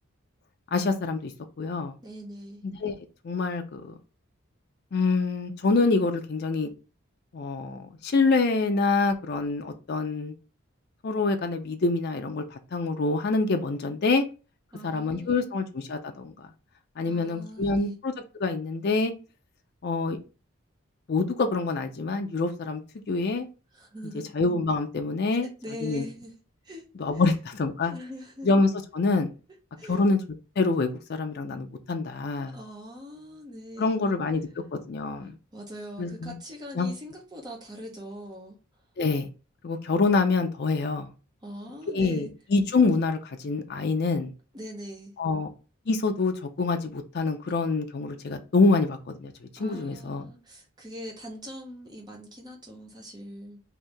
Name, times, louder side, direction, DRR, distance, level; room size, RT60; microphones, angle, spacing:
voice 1, 0.7-1.3 1.6-2.0 2.6-2.9 3.2-3.9 4.9-6.7 7.3-10.3 11.0-14.2 14.8-16.5 17.0-19.1 19.8-20.2 21.1-22.8 23.1-23.5 24.3-25.5 25.8-26.0 27.0-27.9 28.4-29.3 29.9-30.2 30.6-32.6 33.8-35.3 36.0-36.3 36.8-36.9 39.0-39.3 39.6-41.1 41.9-44.3 45.2-45.5 45.9-50.3, left 3 dB, 45° left, 0.4 m, -26 dB
voice 2, 2.0-2.6 14.7-15.6 17.1-18.0 23.7-24.3 25.6-26.3 26.6-26.8 27.1-27.3 27.9-28.5 29.8-30.1 32.3-34.2 35.2-38.6 41.4-42.3 44.5-45.1 49.6-53.6, equal, 20° right, 0.8 m, -42 dB
2.8 x 2.7 x 3.3 m
head